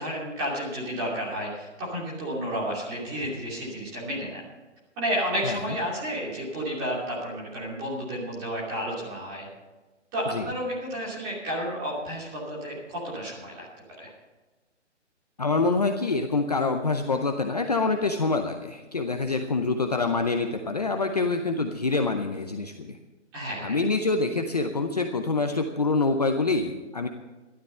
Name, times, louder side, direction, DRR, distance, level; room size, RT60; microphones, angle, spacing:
voice 1, 0.0-4.5 5.0-9.5 10.1-13.7 14.0-14.1 23.3-23.8, equal, 10° right, -5 dB, 2.8 m, -31 dB
voice 2, 5.4-5.8 10.3-10.5 15.4-23.0 23.6-27.1, left 3 dB, 35° left, 5 dB, 0.6 m, -26 dB
13.5 x 12.0 x 5.5 m, 1.2 s
hypercardioid pair, 175°, 37 cm